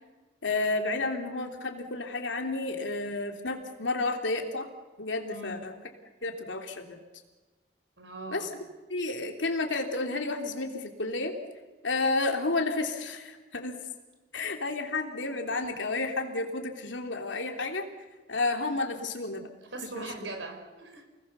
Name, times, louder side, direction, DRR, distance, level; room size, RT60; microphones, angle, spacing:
voice 1, 0.4-4.7 5.0-5.7 6.2-7.0 8.3-8.5 8.9-11.3 11.8-13.8 14.3-17.9 18.3-19.4 19.9-20.1, left 3 dB, 90° left, 4 dB, 3.1 m, -31 dB
voice 2, 5.3-5.6 8.0-8.5 19.7-21.0, right 2 dB, 90° right, 5 dB, 4.9 m, -40 dB
29.0 x 20.5 x 6.9 m, 1.2 s
head